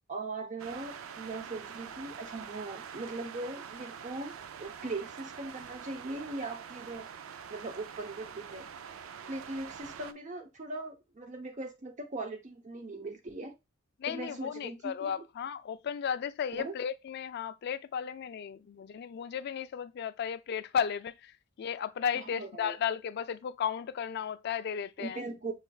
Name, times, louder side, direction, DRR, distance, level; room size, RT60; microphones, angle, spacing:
voice 1, 0.1-7.1 7.5-8.7 9.3-13.5 14.1-15.2 16.5-16.8 22.1-22.8 25.0-25.5, right 2 dB, 40° right, 0.8 m, -40 dB
sound 1, 0.6-10.1, right 7 dB, 90° right, 0.4 m, -45 dB
voice 2, 14.0-21.3 21.6-25.2, left 7 dB, 55° left, 0.3 m, -34 dB
6.4 x 3.2 x 2.3 m
head